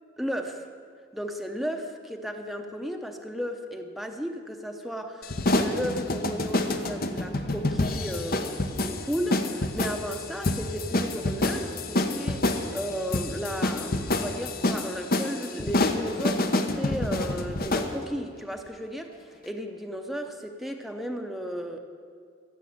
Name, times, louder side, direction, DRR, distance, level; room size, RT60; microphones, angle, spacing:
voice 1, 0.2-0.7 1.1-19.1 19.4-21.8, equal, ahead, 4 dB, 0.8 m, -34 dB
sound 1, 5.2-17.9, left 2 dB, 55° left, 0.9 m, -28 dB
14.5 x 7.7 x 8.6 m, 2.2 s
head